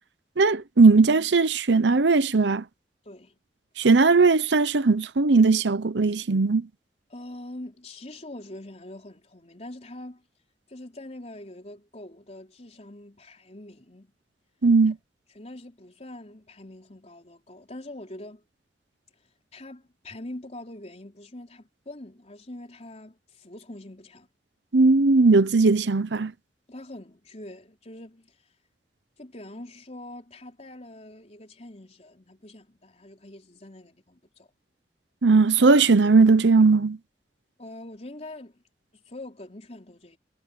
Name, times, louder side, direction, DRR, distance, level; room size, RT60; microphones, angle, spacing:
voice 1, 0.4-2.6 3.8-6.6 14.6-15.0 24.7-26.3 35.2-37.0, right 3 dB, 90° right, 0.8 m, -18 dB
voice 2, 3.0-3.4 7.1-10.2 10.7-14.1 14.9-15.0 15.3-18.4 19.5-24.3 26.7-28.4 29.2-34.5 37.6-38.6 38.9-40.2, left 1 dB, 40° left, 4.0 m, -43 dB
head